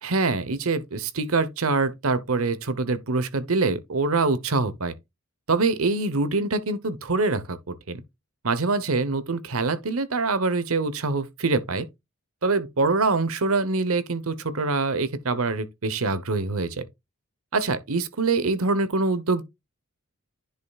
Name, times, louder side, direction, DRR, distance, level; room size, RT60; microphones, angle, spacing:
voice 1, 0.0-4.9 5.5-8.0 8.4-11.9 12.4-16.9 17.5-19.4, right 3 dB, 85° right, 1.0 m, -24 dB
10.0 x 5.5 x 2.4 m
head